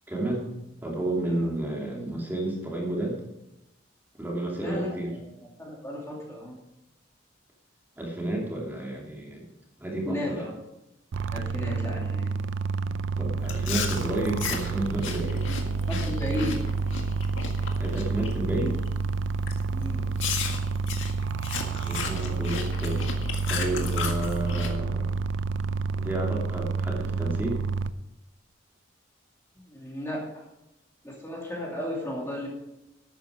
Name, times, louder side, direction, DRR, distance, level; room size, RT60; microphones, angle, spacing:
voice 1, 0.1-0.5 0.8-3.2 4.2-5.1 8.0-9.4 9.8-10.4 13.2-15.5 17.8-18.8 21.9-23.1 23.5-25.1 25.9-27.6, right 1 dB, 10° right, -3 dB, 2.7 m, -31 dB
voice 2, 4.6-5.3 5.6-6.6 10.0-10.5 11.3-12.3 15.9-16.6 19.7-20.1 29.6-30.4 31.0-32.5, left 1 dB, 15° left, -3 dB, 2.5 m, -34 dB
sound 1, 11.1-27.9, right 4 dB, 75° right, 0.5 m, -29 dB
Chewing mastication, 13.4-18.3 18.7-19.0 19.5-19.6 20.2-24.7, left 6 dB, 80° left, 1.8 m, -35 dB
12.5 x 9.3 x 5.0 m, 0.90 s
head